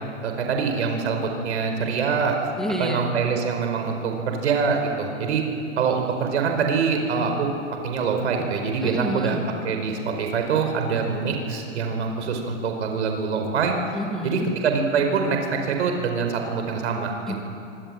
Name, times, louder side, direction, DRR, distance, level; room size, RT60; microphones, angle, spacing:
voice 1, 0.2-2.5 2.8-5.4 5.8-7.6 7.8-9.4 9.6-13.8 14.2-17.1, right 5 dB, 60° right, 4 dB, 5.0 m, -24 dB
voice 2, 2.6-3.1 8.8-9.5 13.9-14.5 17.3-17.4, equal, ahead, 1 dB, 2.2 m, -29 dB
26.5 x 24.5 x 9.0 m, 2.6 s
hypercardioid pair, 170°, 37 cm